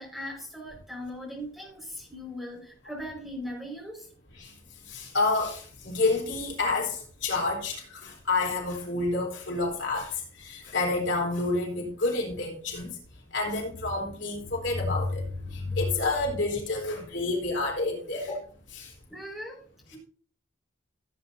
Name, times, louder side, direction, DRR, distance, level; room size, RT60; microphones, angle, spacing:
voice 1, 0.0-4.1 18.2-18.4 19.1-19.6 19.9-20.0, equal, ahead, 5.1 m, -39 dB
voice 2, 4.9-12.9 13.3-18.3 18.7-18.9, left 3 dB, 65° left, 3.8 m, -29 dB
16.5 x 9.0 x 2.7 m
head